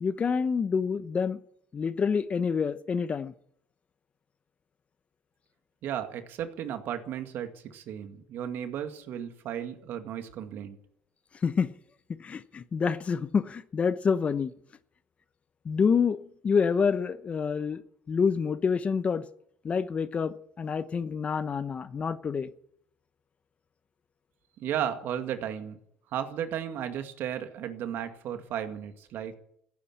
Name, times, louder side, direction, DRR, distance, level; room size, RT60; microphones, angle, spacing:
voice 1, 0.0-1.4 1.7-3.3 11.4-11.7 12.2-14.5 15.6-16.2 16.4-17.8 18.1-19.2 19.6-22.5, left 6 dB, 30° left, 0.9 m, -27 dB
voice 2, 5.8-10.8 24.6-25.8 26.1-29.3, right 9 dB, 60° right, 2.2 m, -34 dB
15.5 x 9.8 x 8.7 m
supercardioid pair, 100°, 4 cm